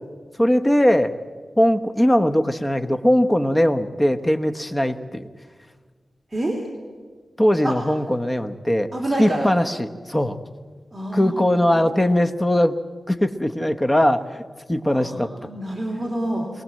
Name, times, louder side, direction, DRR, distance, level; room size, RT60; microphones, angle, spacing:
voice 1, 0.4-1.1 1.6-5.3 7.4-8.9 9.2-10.4 11.1-12.8 13.1-14.4 14.7-15.3, equal, 15° left, 7 dB, 1.1 m, -20 dB
voice 2, 8.9-9.5 10.9-11.3 14.9-16.5, right 1 dB, 15° right, -1 dB, 3.0 m, -27 dB
22.5 x 18.5 x 7.6 m, 1.5 s
wide cardioid pair, 90°, 0 cm